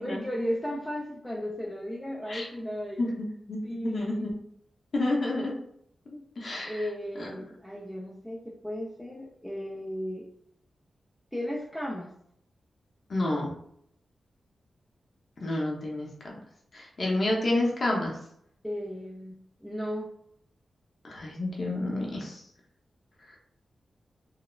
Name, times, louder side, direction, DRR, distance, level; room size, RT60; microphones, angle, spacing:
voice 1, 0.0-3.1 3.6-4.3 6.6-10.3 11.3-12.1 18.6-19.4 19.6-20.1, equal, 5° left, -4 dB, 0.4 m, -35 dB
voice 2, 3.0-4.3 4.9-5.5 6.1-6.7 7.2-7.3 13.1-13.5 15.4-16.4 16.7-18.1 21.0-22.4, left 2 dB, 55° left, -3 dB, 0.7 m, -29 dB
3.1 x 2.0 x 2.3 m, 0.69 s
cardioid pair, 85°, 0 cm